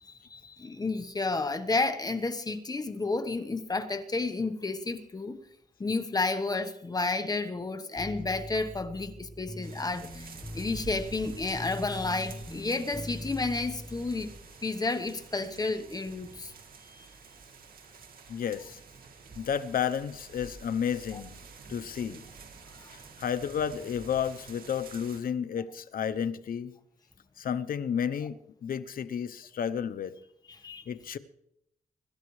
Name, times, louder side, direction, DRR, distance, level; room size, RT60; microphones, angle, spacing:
voice 1, 0.0-5.4 5.8-14.3 14.6-16.5 16.9-17.1 21.1-21.2 22.8-22.9 30.6-30.8, left 3 dB, 25° left, 1.1 m, -31 dB
sound 1, 8.0-14.4, left 1 dB, ahead, 1.1 m, -42 dB
sound 2, 9.6-25.2, right 4 dB, 70° right, 2.3 m, -49 dB
voice 2, 18.3-18.8 19.4-21.3 21.7-22.2 22.9-26.7 27.4-30.1 30.9-31.2, left 8 dB, 70° left, 0.8 m, -32 dB
24.0 x 13.0 x 3.2 m
wide cardioid pair, 115°, 15 cm